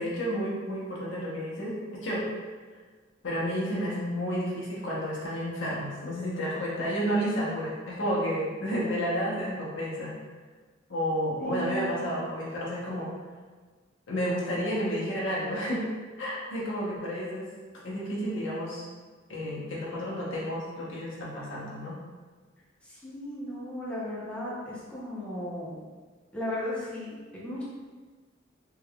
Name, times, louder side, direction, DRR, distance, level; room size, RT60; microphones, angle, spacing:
voice 1, 0.0-2.3 3.2-10.2 10.9-13.1 14.1-15.9 16.2-17.5 17.8-18.9 19.3-22.0, equal, 70° left, -6 dB, 0.9 m, -31 dB
voice 2, 11.4-12.0 22.8-25.8 26.3-27.6, left 1 dB, 5° left, -8 dB, 0.7 m, -35 dB
3.4 x 3.2 x 2.3 m, 1.4 s
head